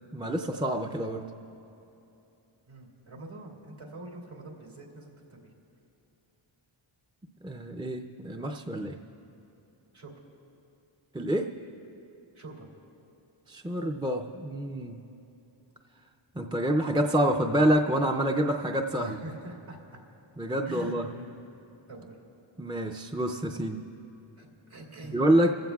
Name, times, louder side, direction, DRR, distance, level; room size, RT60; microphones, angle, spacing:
voice 1, 0.1-1.2 7.4-9.0 11.1-11.5 13.5-15.0 16.4-19.2 20.4-21.1 22.6-23.8 25.0-25.5, right 1 dB, 10° right, 2 dB, 0.4 m, -27 dB
voice 2, 2.7-5.5 9.9-10.1 12.3-12.7 19.0-20.0 20.6-21.3 21.9-22.2 24.4-25.2, right 1 dB, 75° right, -1 dB, 2.8 m, -44 dB
25.0 x 15.0 x 2.3 m, 2.9 s
wide cardioid pair, 95°, 50 cm